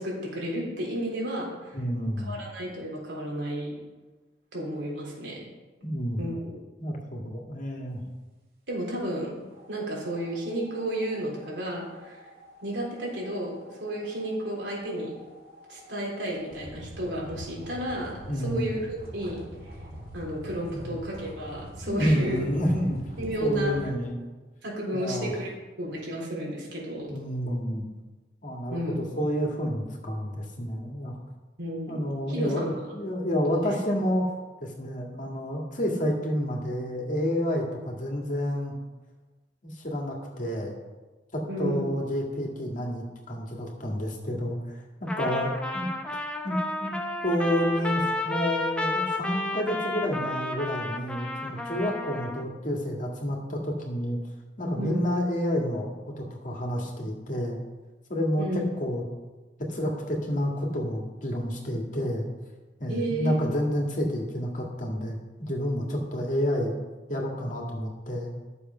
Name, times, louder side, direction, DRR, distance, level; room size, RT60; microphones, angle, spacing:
voice 1, 0.0-1.8 2.2-3.7 4.5-5.4 6.2-6.6 8.7-9.3 9.7-12.2 12.6-15.1 15.7-19.4 20.1-22.4 23.2-23.8 24.6-25.5 25.8-27.1 28.7-29.1 31.6-32.9 33.3-33.6 41.5-41.8 54.8-55.1 58.4-58.6 62.9-63.3, right 1 dB, 85° right, -3 dB, 3.8 m, -32 dB
voice 2, 1.7-2.4 5.8-6.2 6.8-8.0 18.3-18.7 20.7-21.0 21.9-23.0 23.4-24.2 24.9-25.3 27.1-27.9 28.4-31.2 31.9-34.3 34.6-38.7 39.6-40.8 41.3-44.6 45.0-45.9 46.4-46.9 47.2-54.2 54.6-55.9 56.2-57.6 58.1-59.0 59.7-62.3 62.8-66.7 67.1-68.3, equal, 45° left, 0 dB, 2.1 m, -29 dB
sound 1, 9.5-23.9, right 1 dB, 55° right, 2.7 m, -45 dB
Trumpet, 45.1-52.4, left 2 dB, 5° left, 0.9 m, -32 dB
11.5 x 7.0 x 5.7 m, 1.2 s
head